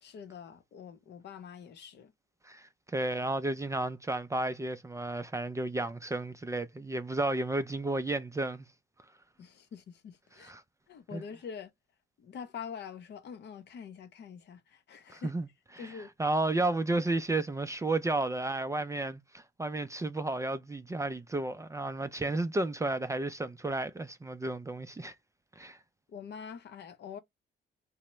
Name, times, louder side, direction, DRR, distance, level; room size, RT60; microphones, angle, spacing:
voice 1, 0.0-2.1 9.4-10.5 10.9-11.7 12.2-15.3 15.8-16.1 26.1-27.2, left 7 dB, 60° left, 0.6 m, -45 dB
voice 2, 2.4-8.7 10.5-10.6 11.1-11.2 15.1-15.5 15.8-15.9 16.2-25.1 25.6-25.8, right 2 dB, 15° right, 0.3 m, -32 dB
2.8 x 2.0 x 3.1 m
cardioid pair, 90°, 20 cm